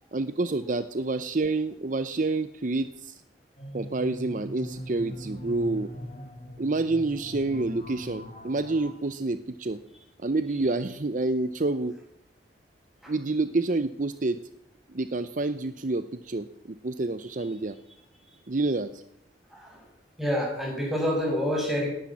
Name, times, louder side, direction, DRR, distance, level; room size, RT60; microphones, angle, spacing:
voice 1, 0.1-3.2 3.7-5.9 6.6-9.8 10.2-11.9 13.1-14.4 14.9-17.8 18.5-19.0, right 2 dB, 45° right, 12 dB, 0.7 m, -28 dB
sound 1, 3.6-8.9, equal, 40° left, 3.0 m, -41 dB
voice 2, 19.5-19.8 20.2-21.9, equal, ahead, -2 dB, 6.3 m, -27 dB
18.5 x 10.5 x 7.3 m, 0.80 s
head